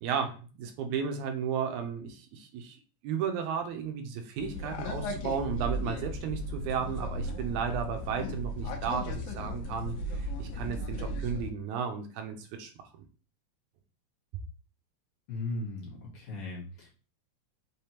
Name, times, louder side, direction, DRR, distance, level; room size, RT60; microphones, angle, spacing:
voice 1, 0.0-2.8 3.0-12.7, right 7 dB, 80° right, 5 dB, 2.1 m, -34 dB
sound 1, 4.4-11.5, equal, 80° left, 2.2 m, -36 dB
voice 2, 15.3-16.9, left 2 dB, 55° left, -5 dB, 1.9 m, -37 dB
5.4 x 3.4 x 2.9 m, 0.36 s
omnidirectional pair, 3.4 m